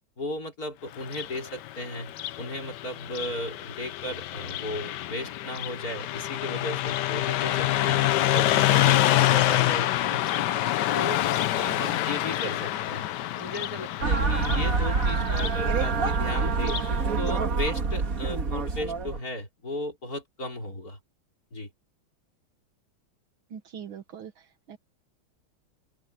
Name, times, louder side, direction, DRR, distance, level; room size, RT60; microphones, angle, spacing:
voice 1, 0.2-10.4 10.9-11.2 11.5-13.0 13.4-16.8 17.2-21.0 21.5-21.7, left 1 dB, 45° left, 4.5 m, -35 dB
Car passing by, 1.0-17.0, left 14 dB, 70° left, 1.2 m, -27 dB
sound 1, 14.0-19.2, right 4 dB, 45° right, 2.0 m, -26 dB
voice 2, 23.5-24.8, right 8 dB, 85° right, 2.2 m, -42 dB
open air
omnidirectional pair, 2.2 m